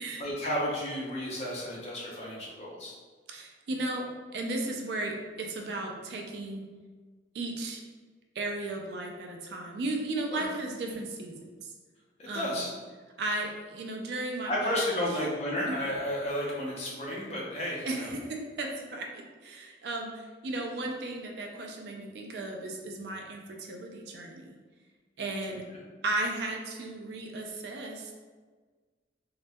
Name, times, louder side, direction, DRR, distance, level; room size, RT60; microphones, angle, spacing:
voice 1, 0.2-2.9 10.3-10.4 10.8-10.9 12.2-12.7 14.5-18.1, equal, 35° left, -5 dB, 0.6 m, -32 dB
voice 2, 3.3-4.0 4.3-6.6 7.3-7.8 8.4-11.7 12.3-12.7 13.2-14.9 17.8-24.6 25.2-25.6 26.0-28.1, right 2 dB, 65° right, 1 dB, 0.3 m, -35 dB
2.2 x 2.1 x 2.7 m, 1.4 s
head